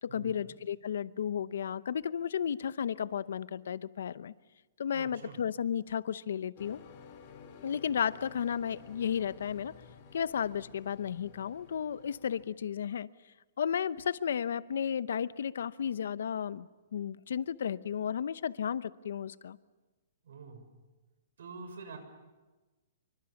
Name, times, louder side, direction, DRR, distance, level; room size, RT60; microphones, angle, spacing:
voice 1, 0.0-4.3 4.8-6.8 7.6-9.7 10.1-13.1 13.6-19.6, left 8 dB, 70° left, 17 dB, 0.8 m, -33 dB
voice 2, 4.9-5.4 20.2-20.6 21.4-22.0, right 4 dB, 70° right, 8 dB, 6.4 m, -46 dB
sound 1, 6.6-12.5, left 6 dB, 30° left, 3.8 m, -53 dB
27.0 x 24.0 x 7.2 m, 1.2 s
hypercardioid pair, 165°, 0 cm